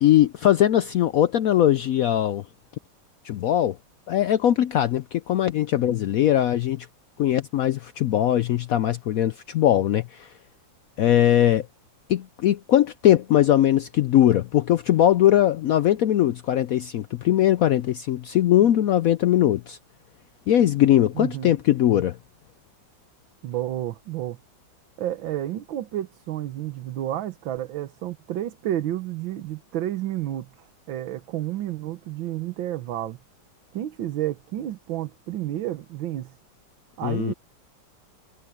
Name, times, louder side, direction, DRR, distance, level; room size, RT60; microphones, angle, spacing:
voice 1, 0.0-2.4 3.2-3.8 4.1-6.9 7.2-10.3 11.0-11.7 12.1-19.8 20.5-22.2 37.0-37.3, left 12 dB, 80° left, 0.7 m, -20 dB
voice 2, 21.1-21.6 23.4-24.4 25.0-33.2 33.7-36.3 37.0-37.3, right 13 dB, 85° right, 1.7 m, -30 dB
omnidirectional pair, 2.1 m